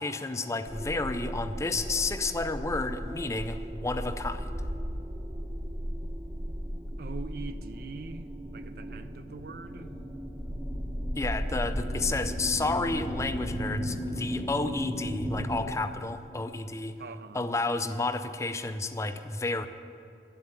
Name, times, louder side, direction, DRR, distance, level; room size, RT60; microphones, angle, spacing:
voice 1, 0.0-4.5 11.2-17.0 17.3-19.7, left 3 dB, 15° left, 0.4 m, -31 dB
sound 1, 0.7-15.7, equal, 25° right, 1.0 m, -35 dB
voice 2, 7.0-10.0 17.0-17.5, right 4 dB, 55° right, 0.5 m, -43 dB
11.0 x 8.0 x 9.9 m
head